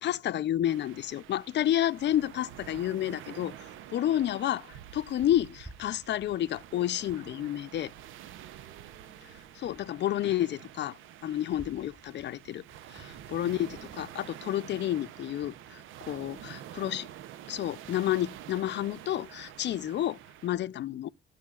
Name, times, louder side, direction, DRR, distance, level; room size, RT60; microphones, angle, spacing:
voice 1, 0.0-7.9 9.6-11.0 11.2-12.6 12.9-17.1 17.5-21.1, left 12 dB, 65° left, 0.6 m, -30 dB
sound 1, 0.6-20.5, right 11 dB, 80° right, 0.7 m, -48 dB
voice 2, 8.3-9.7 11.2-11.4 20.5-20.9, right 4 dB, 55° right, 3.4 m, -60 dB
sound 2, 19.6-19.7, right 1 dB, 20° right, 7.5 m, -60 dB
22.5 x 8.3 x 2.4 m
cardioid pair, 90°, 20 cm